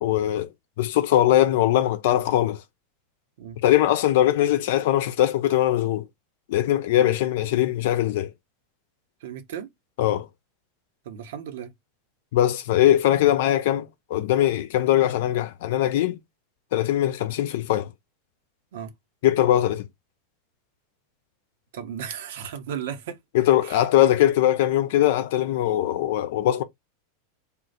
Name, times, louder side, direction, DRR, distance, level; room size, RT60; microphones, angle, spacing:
voice 1, 0.0-0.5 0.8-2.6 3.6-6.1 6.5-8.3 10.0-10.3 12.3-16.2 16.7-17.9 19.2-19.9 23.3-26.6, left 13 dB, 60° left, 0.6 m, -21 dB
voice 2, 9.2-9.7 11.0-11.7 18.7-18.9 21.7-23.2 23.6-23.8, right 8 dB, 65° right, 0.9 m, -35 dB
3.7 x 2.4 x 4.1 m
figure-of-eight pair, 90°, 0 cm